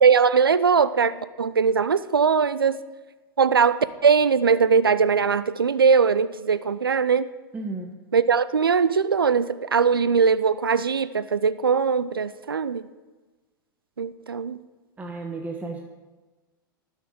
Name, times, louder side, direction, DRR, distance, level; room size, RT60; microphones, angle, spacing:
voice 1, 0.0-2.8 3.4-7.3 8.1-12.8 14.0-14.6, right 6 dB, 90° right, 15 dB, 0.5 m, -20 dB
voice 2, 7.5-7.9 15.0-15.8, right 3 dB, 15° right, 2 dB, 1.1 m, -33 dB
18.0 x 6.5 x 5.2 m, 1.2 s
hypercardioid pair, 95°, 12 cm